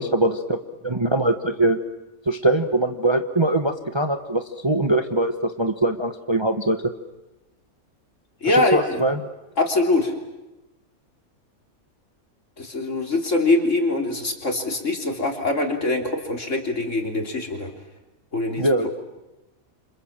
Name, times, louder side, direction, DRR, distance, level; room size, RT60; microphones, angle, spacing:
voice 1, 0.0-1.8 2.3-6.8 8.5-9.2 18.6-18.9, right 1 dB, 20° right, 7 dB, 1.1 m, -22 dB
voice 2, 8.4-9.1 9.6-10.1 12.6-17.7 18.3-18.9, left 2 dB, 55° left, 3 dB, 3.8 m, -23 dB
28.5 x 27.0 x 7.4 m, 1.0 s
omnidirectional pair, 1.5 m